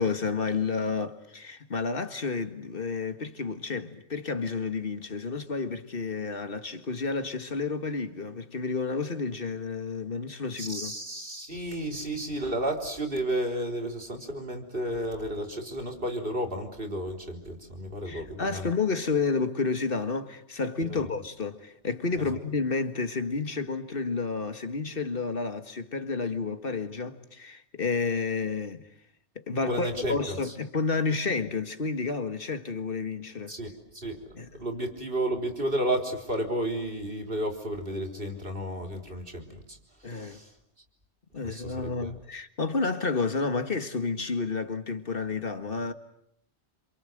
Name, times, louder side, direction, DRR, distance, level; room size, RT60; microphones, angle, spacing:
voice 1, 0.0-10.9 18.1-28.8 29.4-33.5 34.3-34.5 40.0-40.4 41.3-45.9, left 4 dB, 50° left, 1.9 m, -30 dB
voice 2, 10.6-18.7 20.8-21.1 22.2-22.3 29.6-30.5 33.5-40.5 41.4-42.1, right 1 dB, 55° right, 4.0 m, -32 dB
27.5 x 27.5 x 7.9 m
omnidirectional pair, 1.2 m